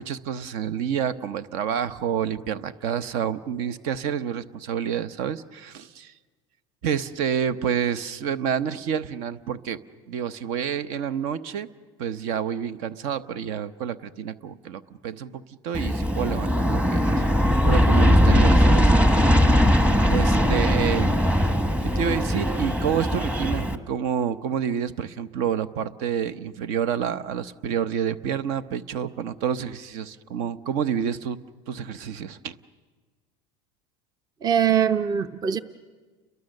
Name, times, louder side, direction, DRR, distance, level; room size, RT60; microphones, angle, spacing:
voice 1, 0.0-6.1 6.8-9.8 10.1-11.7 12.0-17.4 17.6-18.9 20.1-21.2 21.8-31.4 31.7-32.5, right 8 dB, 65° right, 14 dB, 0.9 m, -28 dB
Aircraft, 15.7-23.8, equal, 10° right, 1.2 m, -20 dB
voice 2, 34.4-35.6, right 8 dB, 25° right, 12 dB, 0.7 m, -22 dB
30.0 x 22.5 x 6.6 m, 1.4 s
supercardioid pair, 135°, 15 cm